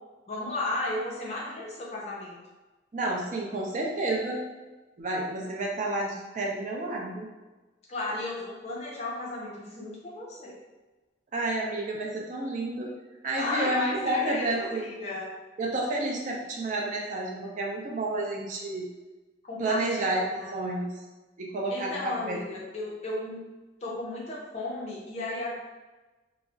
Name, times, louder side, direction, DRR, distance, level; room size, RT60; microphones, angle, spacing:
voice 1, 0.3-2.4 7.9-10.6 13.4-15.3 19.4-20.6 21.7-23.4 23.8-25.5, left 2 dB, 35° left, -5 dB, 0.5 m, -34 dB
voice 2, 2.9-4.4 5.0-7.3 11.3-12.9 13.2-14.8 15.6-18.9 19.6-20.2 20.5-21.0 21.4-22.4, right 2 dB, 45° right, -2 dB, 0.4 m, -30 dB
2.3 x 2.0 x 3.6 m, 1.2 s
head